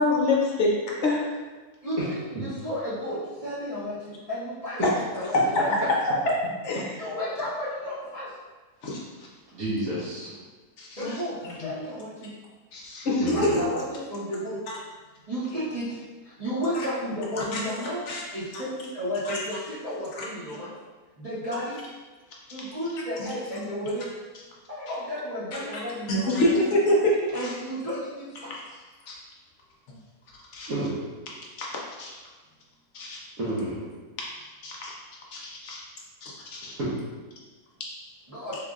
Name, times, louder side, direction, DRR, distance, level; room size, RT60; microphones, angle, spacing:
voice 1, 0.0-1.3 6.6-6.8 8.8-9.0 10.8-11.1 11.4-11.7 12.7-13.5 17.4-17.6 18.1-18.2 18.5-18.6 19.3-19.4 20.2-20.3 26.1-27.5 29.1-29.2 30.5-30.7 31.6-31.7 32.0-32.1 32.9-33.2 34.6-34.9 35.3-35.8 36.2-36.7, left 1 dB, 60° left, -3 dB, 0.8 m, -26 dB
voice 2, 1.8-3.2 3.4-5.6 7.0-8.3 11.0-11.3 11.6-12.3 13.1-14.6 15.3-15.8 16.4-18.0 18.3-20.7 21.2-21.8 22.5-24.1 24.7-26.5 27.3-28.5 38.3-38.6, equal, 50° right, -11 dB, 0.4 m, -32 dB
voice 3, 9.5-10.3 13.2-13.6 20.5-20.6 30.7-31.0 33.4-33.8 36.6-36.9, right 1 dB, 65° right, -11 dB, 1.3 m, -30 dB
3.6 x 3.2 x 2.4 m, 1.3 s
omnidirectional pair, 1.6 m